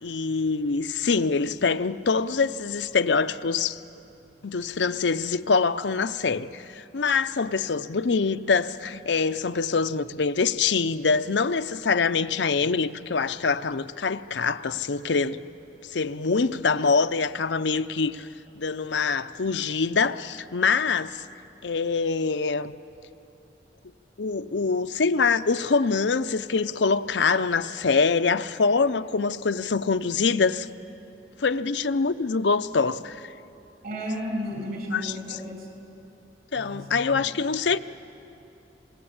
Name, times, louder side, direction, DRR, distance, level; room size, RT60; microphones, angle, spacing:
voice 1, 0.0-3.8 4.4-15.4 15.9-18.3 18.6-21.2 21.6-22.8 24.2-30.7 31.4-33.3 36.5-37.8, left 4 dB, 85° left, 0.7 m, -24 dB
voice 2, 33.8-35.7 36.5-37.3, equal, 55° right, 6.4 m, -33 dB
27.5 x 20.5 x 8.8 m
head